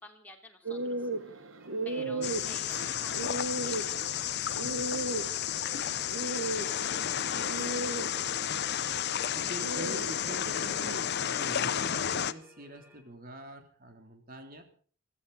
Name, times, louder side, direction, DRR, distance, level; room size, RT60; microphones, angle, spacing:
voice 1, 0.0-1.5 1.8-7.7, left 1 dB, 10° left, 1 dB, 3.1 m, -54 dB
sound 1, 0.6-13.0, left 4 dB, 10° right, 2.6 m, -60 dB
sound 2, 0.7-12.2, right 2 dB, 70° right, 1.1 m, -37 dB
voice 2, 2.0-2.3 9.0-14.6, equal, 45° right, 6 dB, 3.3 m, -45 dB
sound 3, 2.2-12.3, left 9 dB, 55° left, 0.8 m, -32 dB
23.5 x 15.0 x 4.1 m, 0.43 s
head